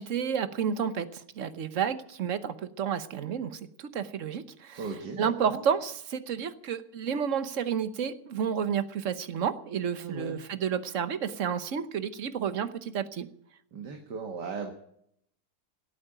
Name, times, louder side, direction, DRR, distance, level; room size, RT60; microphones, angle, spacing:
voice 1, 0.0-4.8 5.2-13.3, right 7 dB, 50° right, 12 dB, 1.2 m, -31 dB
voice 2, 4.8-5.6 10.0-10.4 13.7-14.7, right 4 dB, 70° right, 3 dB, 2.3 m, -37 dB
17.0 x 8.6 x 9.0 m, 0.70 s
omnidirectional pair, 1.9 m